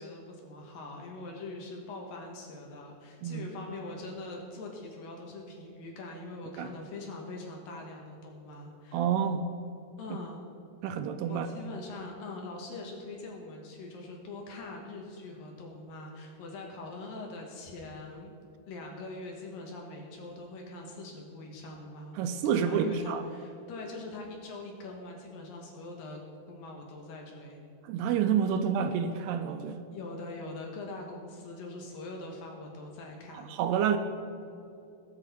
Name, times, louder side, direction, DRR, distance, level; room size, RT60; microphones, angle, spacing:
voice 1, 0.0-9.0 10.0-10.4 11.3-18.3 18.7-26.2 26.5-27.6 29.9-33.5, left 2 dB, 65° left, 0 dB, 2.6 m, -43 dB
voice 2, 8.9-9.5 10.8-11.5 22.2-23.2 27.8-29.8 33.5-34.0, right 7 dB, 80° right, 9 dB, 2.4 m, -28 dB
19.0 x 9.0 x 4.3 m, 2.8 s
omnidirectional pair, 5.1 m